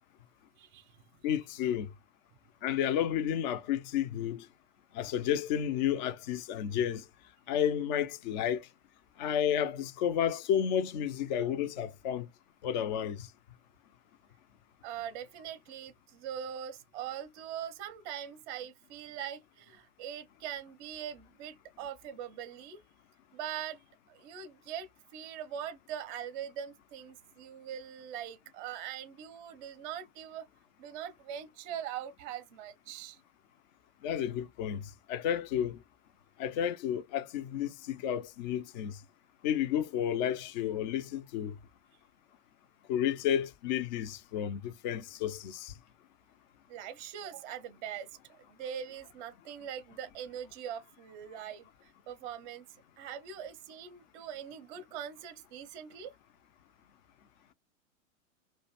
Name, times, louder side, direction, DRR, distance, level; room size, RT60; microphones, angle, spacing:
voice 1, 0.6-1.0 14.8-22.8 23.3-23.8 24.1-30.5 30.8-33.2 46.7-52.7 53.0-56.2, right 9 dB, 35° right, 0.5 m, -42 dB
voice 2, 1.2-1.9 2.6-4.5 4.9-7.0 7.5-8.7 9.2-12.3 12.6-13.3 34.0-35.8 36.4-39.0 39.4-41.6 42.9-45.7, left 9 dB, 35° left, 0.4 m, -31 dB
2.5 x 2.1 x 2.8 m
hypercardioid pair, 105°, 41 cm